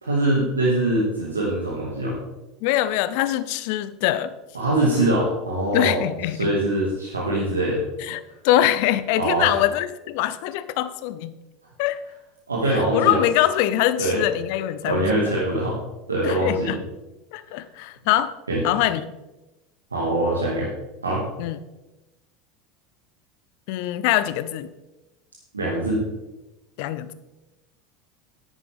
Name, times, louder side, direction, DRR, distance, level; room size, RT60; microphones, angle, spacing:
voice 1, 0.0-2.2 4.5-6.0 6.4-7.8 9.2-9.6 12.5-13.2 14.0-14.2 14.8-15.8 16.1-16.8 18.5-18.6 19.9-20.7 21.0-21.2 25.5-26.0, right 1 dB, 90° right, -5 dB, 2.2 m, -23 dB
voice 2, 2.6-4.3 5.7-6.5 8.1-11.4 11.8-12.0 12.7-15.2 16.2-16.8 17.3-18.4 18.6-19.1 21.4-21.6 23.7-24.7 26.8-27.1, left 13 dB, 60° left, 14 dB, 0.7 m, -23 dB
12.5 x 9.2 x 3.7 m, 1.0 s
hypercardioid pair, 80°, 0 cm